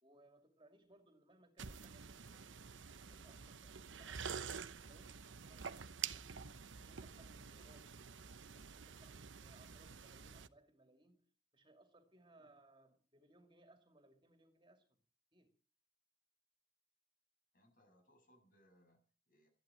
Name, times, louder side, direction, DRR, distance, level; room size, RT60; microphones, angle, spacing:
voice 1, 0.0-2.8 3.1-4.6 4.9-6.6 6.8-8.0 8.4-14.9 15.3-15.5, right 2 dB, 25° right, 2.5 m, -67 dB
sound 1, 1.6-10.5, right 7 dB, 85° right, 0.9 m, -49 dB
voice 2, 17.5-19.5, equal, 50° left, 7.1 m, -71 dB
14.0 x 11.5 x 8.8 m
head